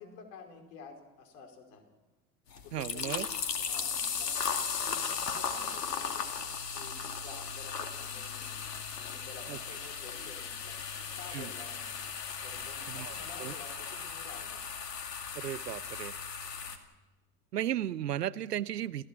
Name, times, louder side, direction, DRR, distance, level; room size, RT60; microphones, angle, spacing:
voice 1, 0.0-1.9 2.6-6.3 6.7-8.6 9.0-11.9 12.4-14.8 16.6-16.7, left 5 dB, 60° left, 4 dB, 5.1 m, -51 dB
sound 1, 2.5-16.8, left 6 dB, 85° left, 2.2 m, -37 dB
voice 2, 2.7-3.3 9.5-9.6 11.3-11.5 12.9-13.5 15.3-16.1 17.5-19.1, right 11 dB, 90° right, 19 dB, 0.7 m, -35 dB
29.0 x 15.5 x 6.0 m, 1.1 s
hypercardioid pair, 85°, 47 cm